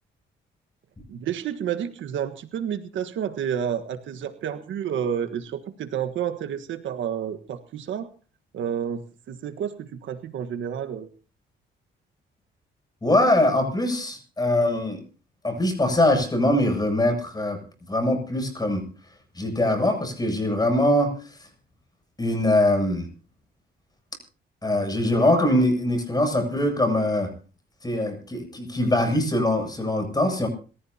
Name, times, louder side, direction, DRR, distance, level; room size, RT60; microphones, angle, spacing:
voice 1, 1.1-8.1 8.5-11.1, right 8 dB, 75° right, 9 dB, 1.5 m, -30 dB
voice 2, 13.0-15.0 15.4-17.6 17.9-18.8 19.3-21.4 22.2-23.1 24.6-27.3 27.8-30.5, left 1 dB, 20° left, 6 dB, 7.9 m, -22 dB
27.5 x 15.0 x 2.9 m, 0.38 s
cardioid pair, 90°, 20 cm